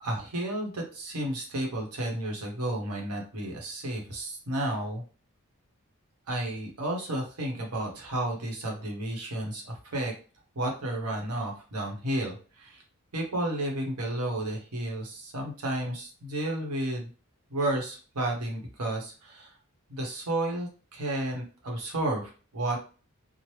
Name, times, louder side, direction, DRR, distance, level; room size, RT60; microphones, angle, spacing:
voice 1, 0.0-5.0 6.3-10.1 10.5-12.8 13.1-17.1 17.5-19.5 19.9-22.8, right 1 dB, 85° right, 1 dB, 0.9 m, -32 dB
3.0 x 2.0 x 3.1 m, 0.37 s
head